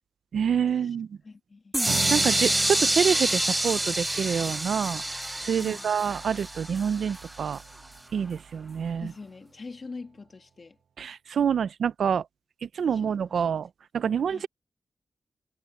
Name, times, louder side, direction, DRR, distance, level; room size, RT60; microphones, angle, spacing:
voice 1, 0.3-1.1 2.1-5.0 5.4-7.6 8.1-9.1 11.0-12.3 12.6-13.7 13.9-14.5, right 7 dB, 70° right, 0.4 m, -27 dB
voice 2, 1.2-2.0 5.5-5.9 9.0-10.8 12.8-13.5 14.3-14.5, left 4 dB, 35° left, 2.3 m, -44 dB
sound 1, 1.7-7.6, right 1 dB, 10° right, 0.5 m, -27 dB
sound 2, 1.8-8.6, right 7 dB, 85° right, 3.7 m, -40 dB
wide cardioid pair, 165°, 0 cm